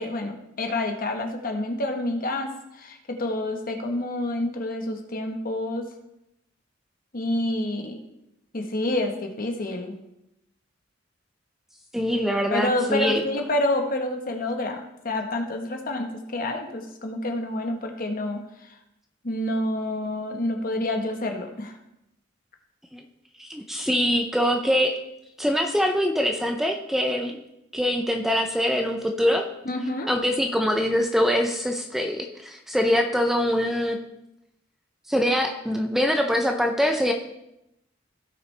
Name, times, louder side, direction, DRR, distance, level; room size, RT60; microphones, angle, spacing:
voice 1, 0.0-5.8 7.1-8.0 8.5-9.9 12.5-18.7 19.2-21.8 29.6-30.1, left 1 dB, 45° left, 4 dB, 1.2 m, -28 dB
voice 2, 11.9-13.3 22.9-23.0 23.4-25.0 25.4-27.4 27.7-29.5 30.1-34.0 35.1-37.1, equal, ahead, 4 dB, 0.6 m, -23 dB
16.5 x 5.8 x 3.3 m, 0.86 s
head